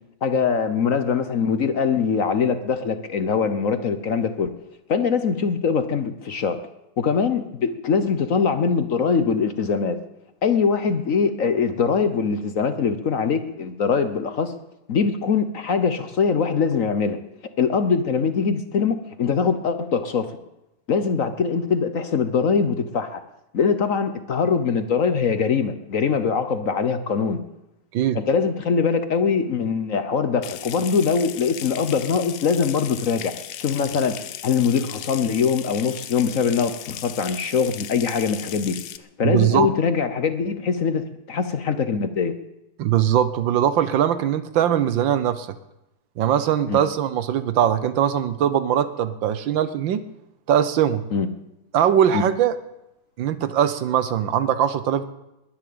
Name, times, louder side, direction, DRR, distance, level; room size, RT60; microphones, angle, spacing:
voice 1, 0.2-4.5 4.9-6.6 7.0-10.0 10.4-14.5 14.9-17.2 17.6-20.3 20.9-23.2 23.5-27.4 28.1-33.3 33.6-38.8 39.2-42.3 46.7-46.8 51.1-51.3 52.1-52.3, left 5 dB, 50° left, 11 dB, 1.1 m, -22 dB
Water tap faucet / Sink (filling or washing) / Trickle dribble, 30.4-39.0, left 11 dB, 70° left, 1.3 m, -37 dB
voice 2, 39.2-39.7 42.8-45.5 46.2-50.0 50.5-51.0 51.7-52.5 53.2-55.0, right 10 dB, 70° right, 13 dB, 1.5 m, -21 dB
21.0 x 7.5 x 8.6 m, 0.90 s
omnidirectional pair, 2.2 m